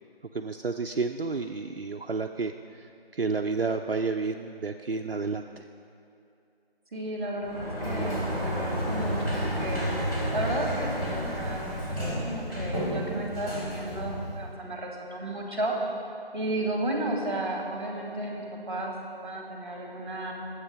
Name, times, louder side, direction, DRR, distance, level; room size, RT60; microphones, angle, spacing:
voice 1, 0.3-2.8 3.1-5.6, right 4 dB, 65° right, 4 dB, 0.6 m, -30 dB
voice 2, 6.9-9.9 10.3-15.7 16.3-18.9 19.2-20.3, right 1 dB, 25° right, -1 dB, 2.2 m, -33 dB
Sliding door, 7.4-14.6, equal, 20° left, 3.1 m, -31 dB
19.5 x 8.2 x 5.1 m, 2.6 s
figure-of-eight pair, 165°, 31 cm